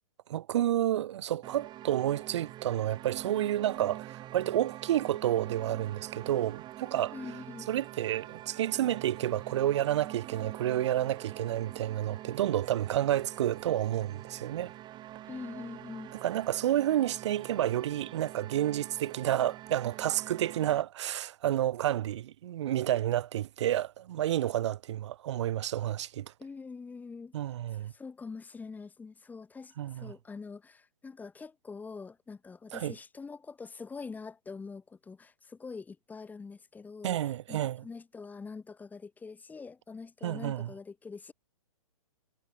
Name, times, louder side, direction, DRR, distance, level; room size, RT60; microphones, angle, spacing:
voice 1, 0.3-7.2 7.7-14.7 16.1-26.3 27.3-27.9 29.8-30.1 32.7-32.9 37.0-37.8 40.2-40.7, right 12 dB, 50° right, 3.6 m, -30 dB
sound 1, 1.4-20.8, right 14 dB, 25° right, 7.8 m, -46 dB
voice 2, 7.1-7.7 15.3-16.2 26.4-27.3 27.9-37.2 37.5-41.3, left 4 dB, 10° left, 4.3 m, -44 dB
figure-of-eight pair, 125°, 19 cm